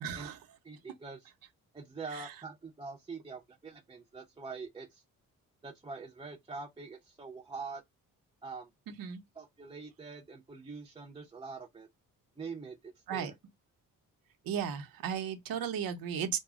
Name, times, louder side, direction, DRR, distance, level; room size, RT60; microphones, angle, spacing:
voice 1, 0.0-0.4 9.0-9.2 13.1-13.3 14.5-16.4, right 8 dB, 85° right, 0.8 m, -35 dB
voice 2, 0.6-1.3 1.7-5.0 5.6-7.8 8.4-8.7 9.3-11.9 12.4-13.3, right 4 dB, 15° right, 0.5 m, -44 dB
2.2 x 2.0 x 3.4 m
cardioid pair, 120°, 33 cm